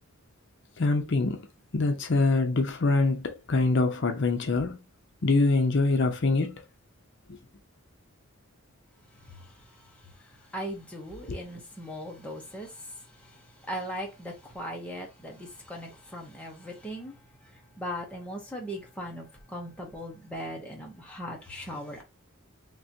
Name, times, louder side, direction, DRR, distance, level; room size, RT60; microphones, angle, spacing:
voice 1, 0.8-1.4 1.7-4.8 5.2-6.6 7.3-7.4, left 3 dB, 60° left, 0.6 m, -24 dB
voice 2, 10.5-12.9 13.2-13.4 13.6-17.1 17.8-22.0, equal, 5° left, 0.9 m, -38 dB
3.8 x 2.8 x 2.7 m
head